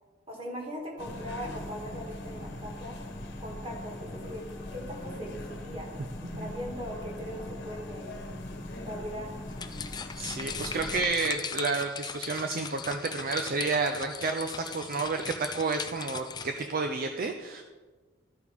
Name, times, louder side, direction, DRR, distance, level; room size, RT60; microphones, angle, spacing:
voice 1, 0.3-3.0 3.4-4.4 4.7-5.9 6.4-8.2 8.8-9.3 9.9-10.0, equal, 30° right, 0 dB, 2.0 m, -40 dB
sound 1, 1.0-11.1, left 1 dB, 60° left, 1.3 m, -40 dB
sound 2, 9.5-16.7, left 6 dB, 20° left, 0.4 m, -39 dB
voice 2, 10.2-17.6, right 4 dB, 45° right, 5 dB, 0.5 m, -31 dB
12.5 x 5.0 x 5.2 m, 1.4 s
head